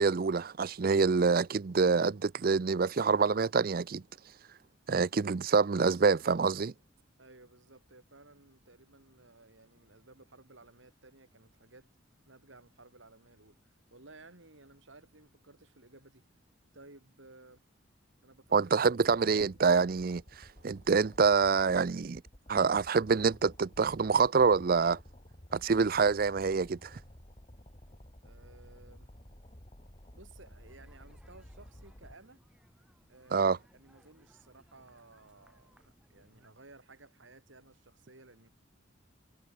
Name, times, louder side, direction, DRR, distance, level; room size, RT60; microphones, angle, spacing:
voice 1, 0.0-4.0 4.9-6.7 18.5-20.2 20.6-22.2 22.5-25.0 25.5-27.0 33.3-33.6, right 5 dB, 50° right, 0.5 m, -26 dB
voice 2, 7.2-11.9 12.3-13.6 13.9-16.2 16.7-17.6 18.2-18.9 28.2-29.1 30.1-32.4 33.1-38.5, right 2 dB, 80° right, 4.2 m, -57 dB
sound 1, 18.4-32.2, left 1 dB, 30° left, 2.5 m, -54 dB
sound 2, 30.7-36.5, equal, 5° right, 6.7 m, -65 dB
head